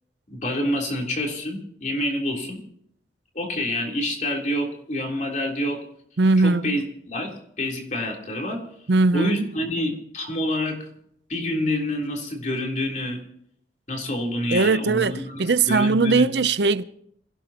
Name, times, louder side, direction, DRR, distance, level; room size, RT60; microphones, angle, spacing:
voice 1, 0.3-2.6 3.3-5.8 6.4-8.6 9.1-10.8 11.3-13.2 13.9-15.4 15.7-16.3, left 1 dB, 45° left, 3.5 m, -27 dB
voice 2, 6.2-6.8 8.9-9.5 14.5-15.1 15.4-16.8, right 3 dB, 75° right, 0.6 m, -20 dB
27.0 x 17.0 x 2.9 m
head